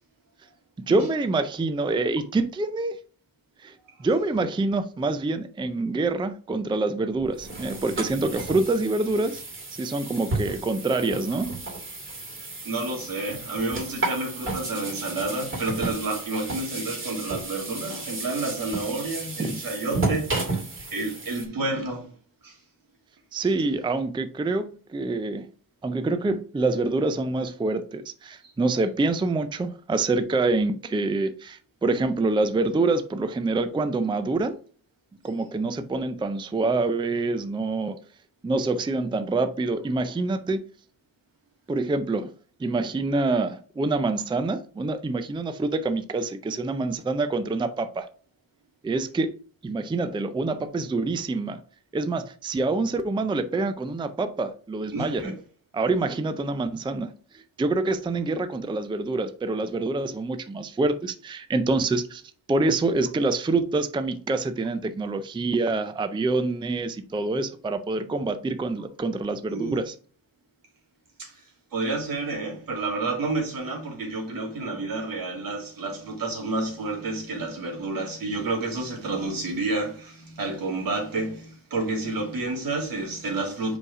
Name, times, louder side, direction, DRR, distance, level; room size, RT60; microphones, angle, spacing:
voice 1, 0.9-3.0 3.6-9.4 9.7-11.6 19.4-19.6 23.3-25.5 25.8-34.6 35.2-38.0 38.4-40.6 41.7-42.3 42.6-48.1 48.8-49.4 49.6-51.6 51.9-55.4 55.7-62.2 62.5-69.9, right 3 dB, 15° right, 0.4 m, -26 dB
sound 1, 7.2-21.4, right 2 dB, 35° right, 2.4 m, -33 dB
voice 2, 12.3-20.4 20.9-22.1 22.4-22.6 23.4-23.5 28.4-28.5 54.9-55.3 69.5-69.8 71.2-71.4 71.7-83.8, right 2 dB, 75° right, 2.8 m, -30 dB
5.1 x 4.9 x 4.8 m
wide cardioid pair, 145°, 35 cm